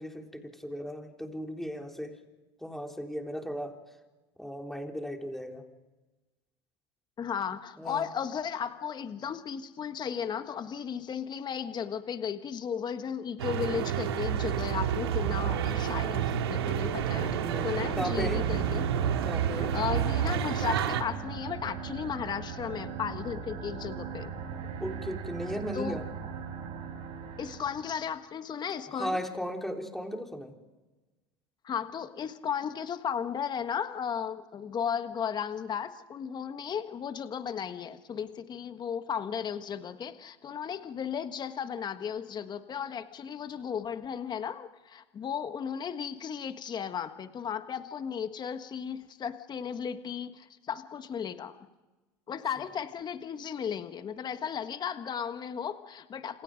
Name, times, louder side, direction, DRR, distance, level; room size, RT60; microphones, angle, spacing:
voice 1, 0.0-2.2 2.6-3.8 4.4-5.6 7.8-8.0 16.7-18.5 19.2-19.8 24.8-26.0 28.9-30.6, equal, ahead, 3 dB, 3.9 m, -36 dB
voice 2, 7.2-17.4 17.6-18.9 19.6-24.3 25.7-26.0 27.4-29.2 31.6-51.6 52.3-56.4, left 7 dB, 35° left, 9 dB, 1.5 m, -35 dB
sound 1, 13.4-21.0, right 9 dB, 85° right, 2.3 m, -29 dB
sound 2, 17.5-28.0, right 6 dB, 55° right, 7.1 m, -39 dB
29.5 x 28.0 x 5.2 m, 1.2 s
hypercardioid pair, 85°, 13 cm